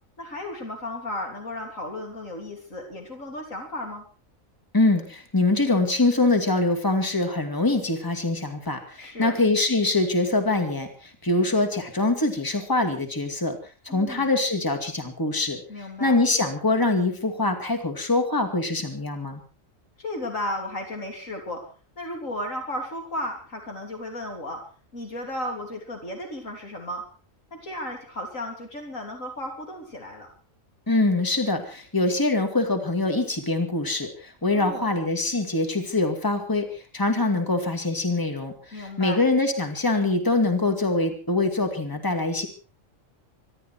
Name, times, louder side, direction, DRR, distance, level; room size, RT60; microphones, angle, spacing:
voice 1, 0.2-4.0 9.0-9.4 13.9-14.3 15.7-16.2 20.0-21.6 22.0-24.6 24.9-27.0 27.5-30.3 34.5-34.9 38.7-39.2, left 1 dB, 75° left, 2 dB, 3.9 m, -34 dB
voice 2, 4.7-13.6 13.8-19.4 30.9-42.5, left 2 dB, 15° left, 5 dB, 2.4 m, -24 dB
25.0 x 12.0 x 4.5 m, 0.36 s
omnidirectional pair, 1.4 m